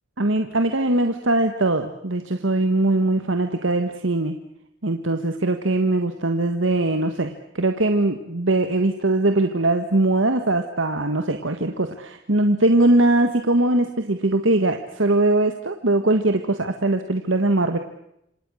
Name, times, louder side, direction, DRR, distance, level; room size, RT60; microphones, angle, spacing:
voice 1, 0.2-4.4 4.8-17.8, right 2 dB, 80° right, 6 dB, 1.7 m, -21 dB
28.0 x 26.0 x 6.5 m, 0.78 s
head